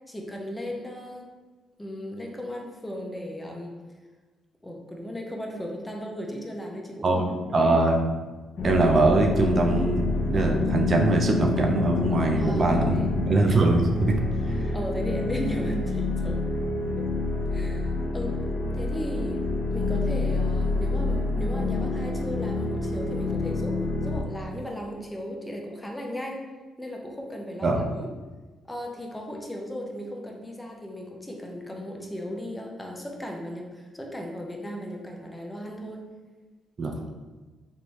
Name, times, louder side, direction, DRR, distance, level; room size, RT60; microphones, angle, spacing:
voice 1, 0.1-1.3 1.8-3.7 4.6-7.7 12.3-13.1 14.7-16.4 17.0-17.1 17.5-18.4 18.7-19.5 19.7-26.5 26.8-28.1 28.7-36.0, equal, 10° left, 0 dB, 0.5 m, -36 dB
voice 2, 7.0-8.0 8.6-13.0 13.3-14.1 14.5-14.7 27.6-27.8 36.8-36.9, right 2 dB, 45° right, 2 dB, 0.4 m, -22 dB
sound 1, 8.6-24.2, left 3 dB, 65° left, 0.6 m, -28 dB
3.4 x 2.6 x 3.0 m, 1.3 s
cardioid pair, 90°, 0 cm